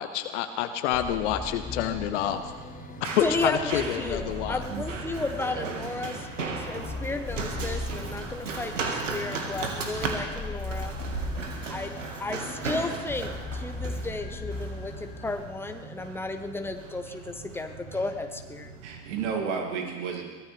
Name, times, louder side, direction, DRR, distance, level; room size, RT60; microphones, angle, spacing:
voice 1, 0.0-2.5 3.0-4.6, left 10 dB, 70° left, 10 dB, 0.9 m, -28 dB
sound 1, 0.9-15.4, left 2 dB, 20° left, 1.4 m, -39 dB
Run, 2.0-19.3, right 3 dB, 85° right, 1.9 m, -37 dB
voice 2, 3.2-10.9 11.7-18.7, left 2 dB, 5° left, 6 dB, 1.2 m, -33 dB
voice 3, 5.4-5.8 17.1-17.2 18.8-20.3, right 6 dB, 70° right, 1 dB, 2.9 m, -32 dB
23.0 x 17.0 x 3.5 m, 1.5 s
hypercardioid pair, 70°, 37 cm